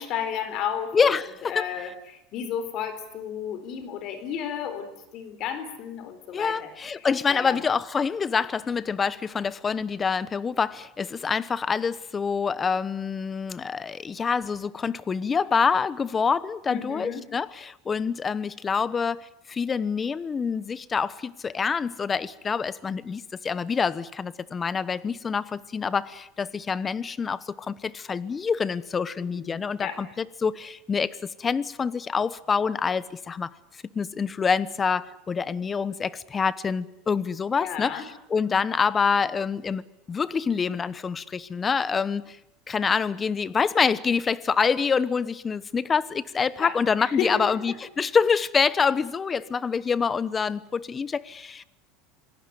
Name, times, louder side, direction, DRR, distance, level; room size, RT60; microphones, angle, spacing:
voice 1, 0.0-1.1 1.4-7.6 16.7-17.2 29.2-30.0 37.6-38.0 46.6-47.8, left 8 dB, 50° left, 11 dB, 4.2 m, -33 dB
voice 2, 0.9-1.7 6.3-33.5 33.9-39.8 40.1-42.4 42.7-51.6, left 5 dB, 20° left, 19 dB, 1.0 m, -26 dB
26.5 x 18.0 x 9.5 m, 0.82 s
supercardioid pair, 125°, 0 cm